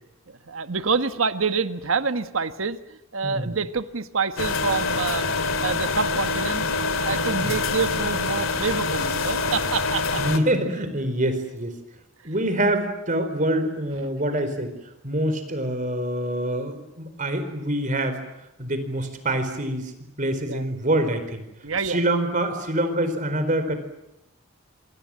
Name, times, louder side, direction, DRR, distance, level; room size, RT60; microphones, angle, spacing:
voice 1, 0.3-6.7 7.0-10.2 20.5-20.7 21.6-22.0, right 5 dB, 85° right, 10 dB, 1.4 m, -27 dB
voice 2, 3.2-3.6 7.4-7.6 10.2-11.8 12.2-14.7 15.0-18.2 18.6-19.9 20.2-21.4 21.9-23.7, right 1 dB, 40° right, 9 dB, 4.4 m, -25 dB
sound 1, 4.4-10.4, left 4 dB, 80° left, 2.7 m, -25 dB
26.5 x 26.5 x 7.7 m, 0.90 s
head